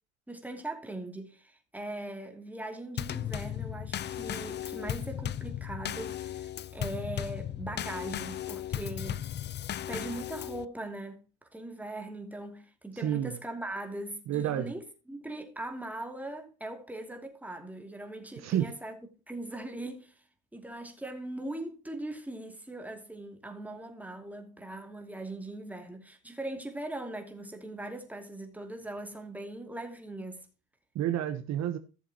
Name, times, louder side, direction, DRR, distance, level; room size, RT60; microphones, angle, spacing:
voice 1, 0.3-9.2 9.9-11.2 11.5-19.0 19.3-20.2 20.5-30.5, right 1 dB, 5° right, 2.6 m, -40 dB
Drum kit / Snare drum / Bass drum, 3.0-10.7, left 11 dB, 35° left, 0.5 m, -36 dB
voice 2, 13.0-13.3 14.3-14.7 18.4-18.7 30.9-31.8, right 11 dB, 55° right, 1.1 m, -29 dB
15.0 x 7.2 x 2.9 m
supercardioid pair, 85°, 33 cm